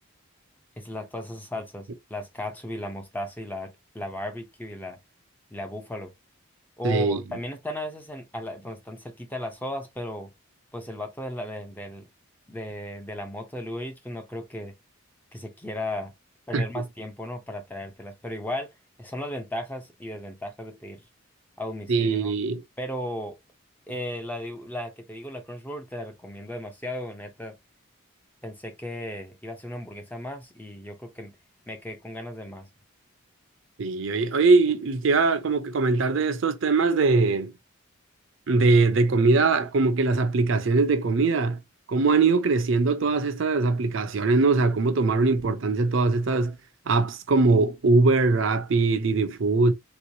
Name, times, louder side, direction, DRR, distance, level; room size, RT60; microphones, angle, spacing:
voice 1, 0.8-5.0 5.5-6.1 6.8-10.3 10.7-12.1 12.5-14.7 15.3-16.1 16.5-18.7 19.0-21.0 21.6-22.3 22.8-23.4 23.9-27.6 28.4-31.3 31.7-32.7, left 1 dB, 10° left, 0.5 m, -35 dB
voice 2, 6.8-7.2 16.5-16.6 21.9-22.6 33.8-37.5 38.5-41.6 41.9-46.6 46.9-49.7, right 3 dB, 60° right, 0.5 m, -21 dB
3.5 x 3.0 x 2.6 m
head